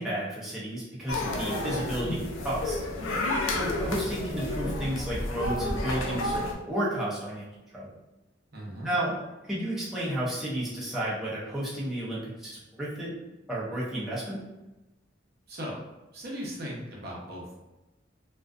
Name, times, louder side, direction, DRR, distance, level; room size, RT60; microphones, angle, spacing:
voice 1, 0.0-2.8 3.5-6.4 6.7-7.5 7.7-7.9 8.8-9.1 9.4-13.1 13.5-14.4, right 1 dB, ahead, -9 dB, 0.6 m, -32 dB
sound 1, 1.1-6.5, left 1 dB, 90° left, 0.4 m, -30 dB
voice 2, 8.5-8.9 15.5-15.8 16.1-17.6, equal, 55° right, -3 dB, 0.6 m, -38 dB
2.4 x 2.3 x 2.3 m, 1.0 s
head